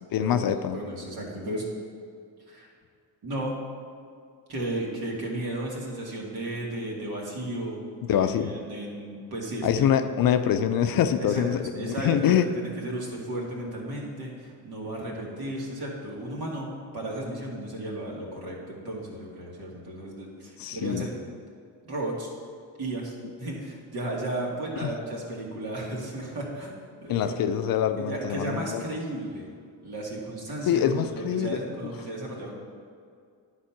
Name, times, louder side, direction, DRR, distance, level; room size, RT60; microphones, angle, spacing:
voice 1, 0.1-0.8 8.0-8.5 9.6-12.5 20.6-21.1 24.8-24.9 27.1-28.8 30.6-31.9, left 9 dB, 60° left, 9 dB, 0.6 m, -25 dB
voice 2, 0.7-1.6 2.5-2.7 3.2-3.6 4.5-7.8 8.1-9.9 11.2-21.1 21.8-22.3 22.8-27.5 28.0-29.4 29.8-32.5, right 1 dB, 65° right, -3 dB, 2.3 m, -34 dB
10.5 x 4.2 x 5.8 m, 2.2 s
supercardioid pair, 70°, 39 cm